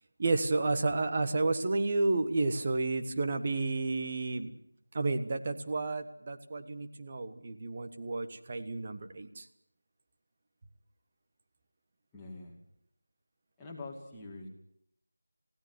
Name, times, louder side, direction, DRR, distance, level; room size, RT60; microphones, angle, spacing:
voice 1, 0.2-4.5 4.9-9.5, right 3 dB, 25° right, 8 dB, 1.4 m, -31 dB
voice 2, 12.1-12.6 13.6-14.5, left 2 dB, 5° left, -5 dB, 2.5 m, -44 dB
21.5 x 17.0 x 9.5 m, 0.71 s
figure-of-eight pair, 175°, 0 cm